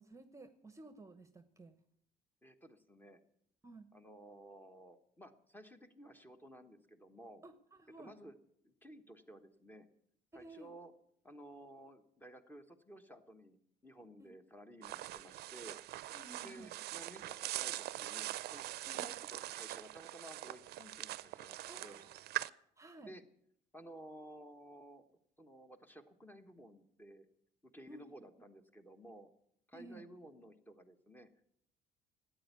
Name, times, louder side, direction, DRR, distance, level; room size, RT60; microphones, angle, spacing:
voice 1, 0.0-1.7 3.6-3.9 7.4-8.1 10.3-10.7 14.2-14.3 16.1-16.7 18.9-19.1 21.7-22.2 22.8-23.1 27.9-28.3 29.7-30.0, right 2 dB, 15° right, 11 dB, 1.0 m, -54 dB
voice 2, 2.4-3.2 3.9-7.4 8.0-8.3 8.6-9.9 10.3-10.9 11.2-15.8 16.4-18.6 19.0-22.0 23.0-23.2 23.7-25.0 25.4-27.3 27.6-29.3 29.7-31.5, right 1 dB, 10° left, 9 dB, 1.3 m, -55 dB
sound 1, 14.8-22.5, right 16 dB, 70° right, 0.5 m, -43 dB
13.0 x 9.1 x 9.6 m, 0.72 s
cardioid pair, 110°, 17 cm